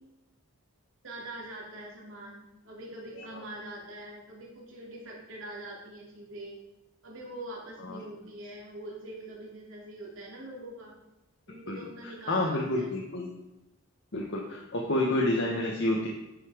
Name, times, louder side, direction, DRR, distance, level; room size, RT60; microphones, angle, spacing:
voice 1, 1.0-6.6 7.0-10.9 11.5-12.9, right 1 dB, 65° right, -3 dB, 2.9 m, -43 dB
voice 2, 11.7-13.3 14.1-16.1, left 1 dB, 55° left, -1 dB, 1.1 m, -29 dB
10.0 x 5.6 x 5.0 m, 0.96 s
head